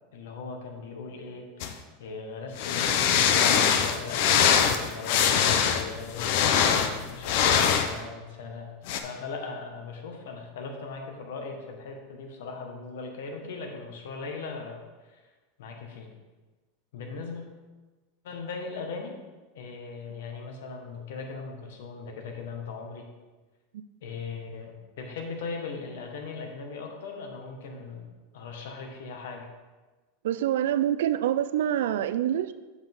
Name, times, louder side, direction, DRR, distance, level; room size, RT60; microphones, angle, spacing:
voice 1, 0.1-1.7 2.0-8.7 9.0-15.2 15.6-16.1 16.9-17.4 18.2-19.1 19.5-23.1 24.0-28.1 28.3-29.5, left 4 dB, 80° left, 2 dB, 1.6 m, -39 dB
Drag object in carpet, 1.6-1.7 2.6-7.9 8.9-9.0, left 8 dB, 55° left, 0.7 m, -23 dB
voice 2, 30.2-32.5, right 11 dB, 85° right, 13 dB, 0.4 m, -26 dB
8.0 x 7.1 x 3.7 m, 1.3 s
supercardioid pair, 165°, 0 cm